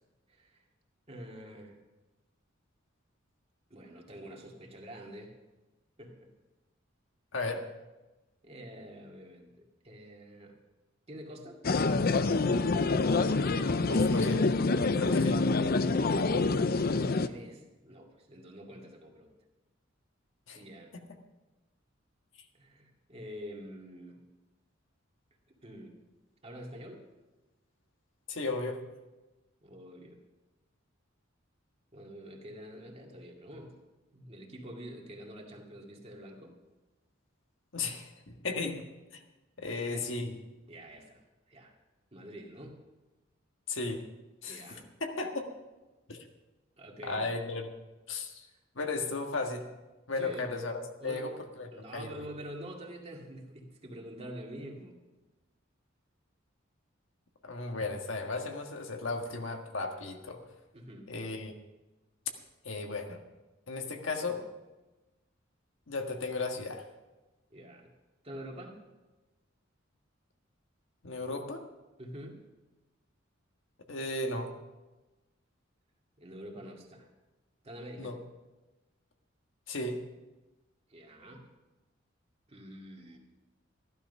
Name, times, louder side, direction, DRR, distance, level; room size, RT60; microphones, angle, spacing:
voice 1, 0.3-0.6 1.1-1.8 3.7-5.4 6.0-6.3 8.4-10.6 11.1-11.6 17.3-19.3 20.5-20.9 22.6-24.2 25.5-26.0 26.4-27.0 29.6-30.2 31.9-33.8 34.1-36.5 39.6-40.1 40.7-41.8 42.1-42.8 44.4-44.9 46.8-47.3 48.4-48.6 50.1-50.5 51.0-51.3 51.7-55.0 60.7-61.1 67.5-67.9 68.2-68.8 72.0-72.4 76.2-77.1 77.6-78.2 80.9-81.5 82.5-83.2, equal, 30° right, 1 dB, 2.3 m, -46 dB
voice 2, 7.3-7.6 13.9-14.4 15.0-15.4 20.5-20.6 28.3-28.8 37.7-38.8 39.1-39.2 39.6-40.4 43.7-44.0 44.4-44.6 45.0-45.4 46.1-46.2 47.0-47.7 48.1-48.5 48.7-49.6 50.1-50.7 51.0-51.3 51.6-52.1 57.4-60.4 61.1-61.5 62.6-63.2 63.7-64.4 65.9-66.8 71.0-71.6 73.9-74.5 78.0-78.2 79.7-80.0, left 3 dB, 70° left, 4 dB, 1.7 m, -35 dB
sound 1, 11.6-17.3, left 3 dB, 50° left, 0.6 m, -26 dB
14.5 x 12.0 x 5.5 m, 1.1 s
head